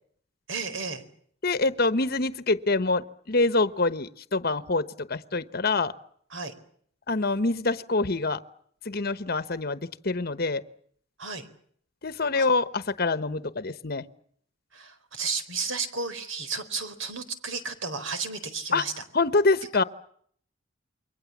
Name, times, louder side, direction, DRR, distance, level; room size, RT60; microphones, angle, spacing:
voice 1, 0.5-1.0 6.3-6.5 11.2-11.5 12.3-12.5 14.7-19.0, right 4 dB, 75° right, 10 dB, 4.2 m, -33 dB
voice 2, 1.4-5.9 7.1-8.4 8.8-10.6 12.0-14.0 18.7-18.8 19.1-19.8, left 3 dB, 50° left, 13 dB, 1.1 m, -25 dB
29.0 x 23.0 x 7.3 m, 0.64 s
head